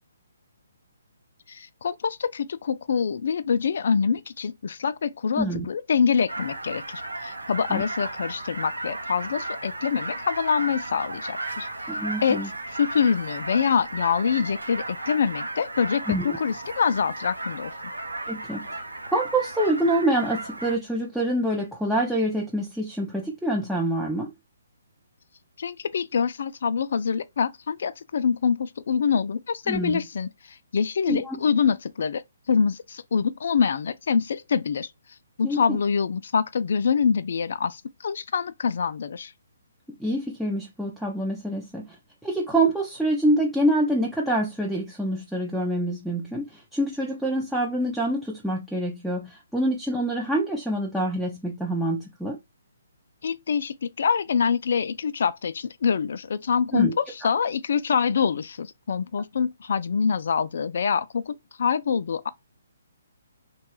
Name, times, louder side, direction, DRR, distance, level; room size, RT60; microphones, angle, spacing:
voice 1, 1.5-11.7 12.2-12.4 12.8-17.7 25.6-30.3 30.7-32.2 32.5-34.9 35.4-39.3 53.2-62.3, left 6 dB, 60° left, 0.3 m, -25 dB
sound 1, 6.3-20.8, right 2 dB, 90° right, 0.7 m, -35 dB
voice 2, 11.9-12.5 16.1-16.4 18.3-18.7 19.1-24.3 29.7-30.0 31.1-31.4 35.4-35.8 40.0-42.0 42.2-52.4 56.7-56.9, right 1 dB, ahead, 0.4 m, -26 dB
3.0 x 2.3 x 3.0 m
figure-of-eight pair, 135°, 0 cm